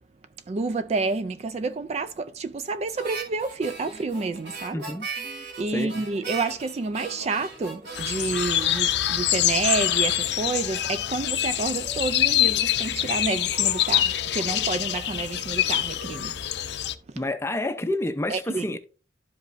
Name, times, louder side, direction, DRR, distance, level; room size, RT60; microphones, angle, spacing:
voice 1, 0.5-4.8 5.6-16.4 17.1-17.2 18.3-18.8, right 3 dB, 35° right, 0.3 m, -29 dB
Harmonica, 2.9-9.4, right 4 dB, 65° right, 3.0 m, -39 dB
sound 1, 3.5-16.0, right 2 dB, 15° right, 1.5 m, -51 dB
voice 2, 4.7-5.0 5.7-5.9 17.2-18.8, left 1 dB, 15° left, 0.6 m, -28 dB
sound 2, 8.0-16.9, left 12 dB, 60° left, 0.5 m, -25 dB
12.0 x 5.2 x 2.6 m
head